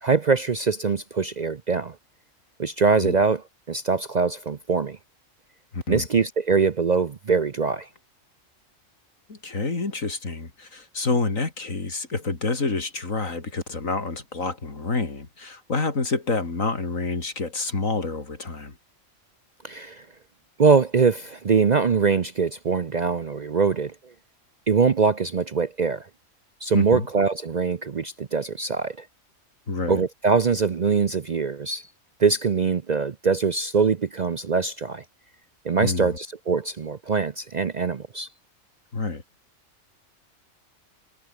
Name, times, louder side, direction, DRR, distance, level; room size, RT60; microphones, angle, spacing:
voice 1, 0.0-1.9 2.6-5.0 5.9-7.9 19.6-20.0 20.6-23.9 24.7-26.0 26.6-29.0 29.9-31.9 32.2-35.0 35.6-38.3, right 5 dB, 45° right, 0.6 m, -23 dB
voice 2, 5.7-6.1 9.3-18.8 26.7-27.1 29.7-30.0 35.8-36.2 38.9-39.2, left 3 dB, 80° left, 3.8 m, -28 dB
omnidirectional pair, 1.4 m